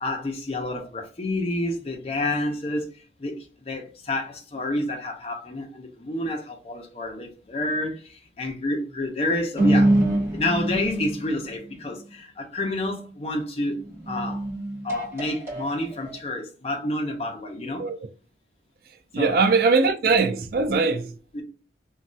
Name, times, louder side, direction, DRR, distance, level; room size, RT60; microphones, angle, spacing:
voice 1, 0.0-2.8 3.2-3.4 3.7-8.0 8.4-9.9 10.3-13.8 14.1-14.4 14.8-17.8 19.2-19.4 21.3-21.4, left 1 dB, 35° left, 0.6 m, -29 dB
sound 1, 9.5-11.5 13.8-16.2, right 1 dB, 15° right, 1.3 m, -24 dB
voice 2, 19.1-21.2, right 4 dB, 50° right, 0.3 m, -21 dB
3.1 x 2.3 x 2.6 m
head